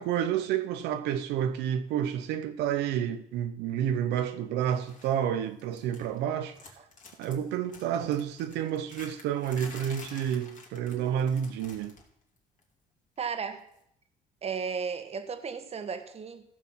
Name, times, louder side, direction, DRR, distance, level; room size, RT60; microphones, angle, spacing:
voice 1, 0.0-6.6 7.2-11.9, right 9 dB, 85° right, 0.7 m, -30 dB
sound 1, 4.7-5.2 5.4-6.3 6.5-12.1 12.4-12.6 13.7-13.8, left 4 dB, 50° left, 2.8 m, -50 dB
voice 2, 13.2-13.6 14.4-16.4, right 6 dB, 35° right, 1.4 m, -34 dB
15.0 x 6.4 x 5.8 m
cardioid pair, 110°, 17 cm